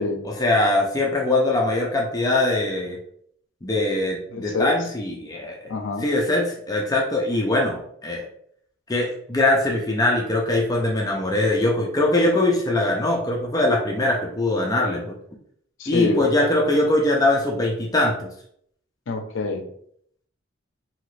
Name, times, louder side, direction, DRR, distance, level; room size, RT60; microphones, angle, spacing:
voice 1, 0.2-3.0 3.6-5.7 6.0-8.3 8.9-15.1 15.9-18.3, left 2 dB, 20° left, -1 dB, 0.4 m, -22 dB
voice 2, 4.3-4.7 5.7-6.1 15.8-16.2 19.1-19.6, left 3 dB, 70° left, 4 dB, 0.5 m, -26 dB
2.8 x 2.5 x 3.1 m, 0.67 s
head